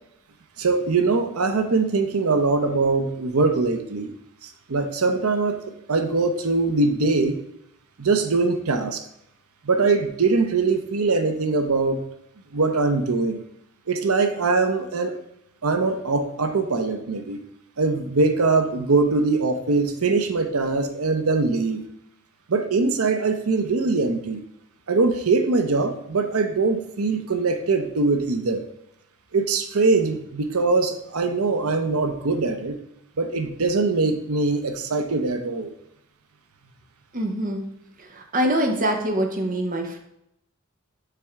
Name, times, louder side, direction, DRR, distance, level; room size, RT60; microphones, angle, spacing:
voice 1, 0.6-4.1 4.7-5.6 5.9-7.4 8.0-9.0 9.7-12.1 12.5-13.4 13.9-15.2 15.6-17.4 17.8-21.8 22.5-24.4 24.9-28.6 29.3-32.7 33.2-35.7, right 3 dB, 85° right, 6 dB, 0.8 m, -22 dB
voice 2, 37.1-37.6 38.0-40.0, right 1 dB, 40° right, 3 dB, 1.0 m, -24 dB
6.8 x 3.7 x 4.5 m, 0.78 s
head